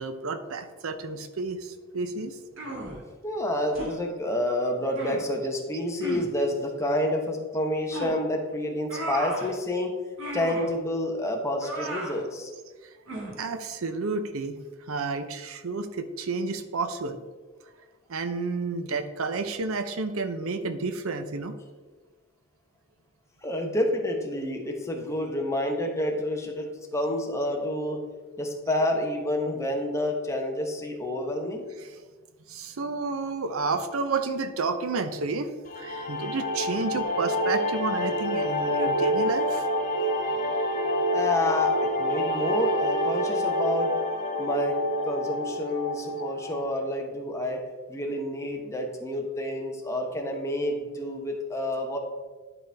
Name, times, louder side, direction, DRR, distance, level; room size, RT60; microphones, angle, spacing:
voice 1, 0.0-2.4 13.4-14.6 14.9-17.2 18.1-21.5 31.8-31.9 32.5-35.5 35.8-39.6, right 3 dB, 90° right, 9 dB, 0.6 m, -31 dB
sound 1, 2.6-3.0 3.7-4.0 4.9-5.2 6.0-6.3 7.9-8.2 8.9-9.5 10.2-10.7 11.6-12.2 13.1-13.4, right 1 dB, 65° right, 1.7 m, -34 dB
voice 2, 3.2-10.0 10.3-12.5 23.4-28.0 28.4-31.6 41.1-44.0 44.4-52.0, left 1 dB, 15° left, 2 dB, 1.0 m, -29 dB
sound 2, 35.7-46.7, equal, 40° left, 0.9 m, -27 dB
11.0 x 4.3 x 3.4 m, 1.3 s
head